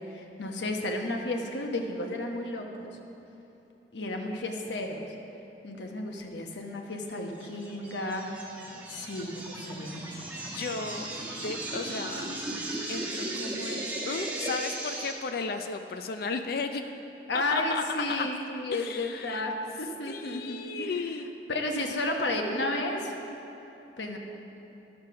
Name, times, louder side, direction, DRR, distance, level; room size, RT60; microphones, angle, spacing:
voice 1, 0.0-2.9 3.9-5.1 5.6-8.3 8.9-10.4 17.3-20.9 21.5-23.1 24.0-24.2, left 2 dB, 90° left, 2 dB, 1.0 m, -32 dB
sound 1, 7.4-15.1, right 1 dB, 10° right, 1.1 m, -36 dB
voice 2, 10.4-11.1 11.4-12.3 12.9-16.9 17.3-18.3 18.7-19.5 20.1-21.4, left 4 dB, 60° left, 7 dB, 0.4 m, -35 dB
11.0 x 6.7 x 5.7 m, 3.0 s
head